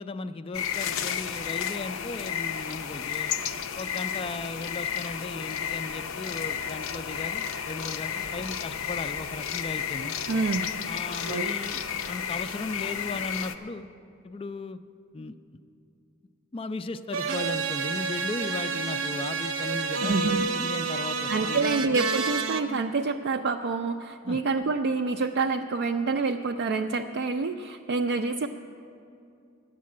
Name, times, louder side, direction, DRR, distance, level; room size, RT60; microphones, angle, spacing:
voice 1, 0.0-3.3 3.8-10.1 10.9-11.8 12.1-13.9 14.2-14.8 15.1-15.4 16.5-21.7 24.2-24.4, left 3 dB, 25° left, 11 dB, 0.3 m, -36 dB
sound 1, 0.5-13.6, left 8 dB, 90° left, 0.6 m, -32 dB
voice 2, 10.3-10.7 11.3-11.5 20.0-20.5 21.3-28.5, right 4 dB, 55° right, 4 dB, 0.3 m, -27 dB
sound 2, 17.1-22.6, right 4 dB, 80° right, 0.8 m, -29 dB
10.0 x 7.4 x 9.6 m, 2.6 s
head